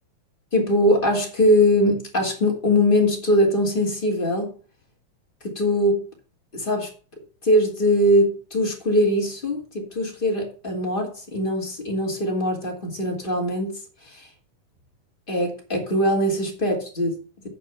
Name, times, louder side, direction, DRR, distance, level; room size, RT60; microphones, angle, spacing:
voice 1, 0.5-4.5 5.4-6.0 6.5-6.9 7.4-14.3 15.3-17.5, left 1 dB, 15° left, -1 dB, 2.5 m, -22 dB
8.9 x 5.8 x 7.2 m, 0.37 s
omnidirectional pair, 4.1 m